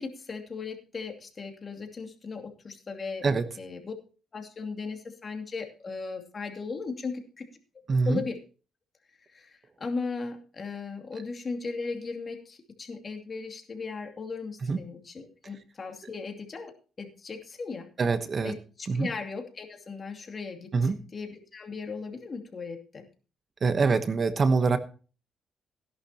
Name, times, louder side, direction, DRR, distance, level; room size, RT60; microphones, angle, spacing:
voice 1, 0.0-3.2 3.6-3.9 4.3-7.5 8.1-8.4 9.3-17.9 18.4-23.1, left 4 dB, 40° left, 4 dB, 2.6 m, -37 dB
voice 2, 7.9-8.2 14.6-14.8 18.0-18.6 18.9-19.1 20.7-20.9 23.6-24.8, right 4 dB, 40° right, 10 dB, 1.1 m, -24 dB
16.5 x 11.0 x 2.9 m, 0.36 s
cardioid pair, 90°, 0 cm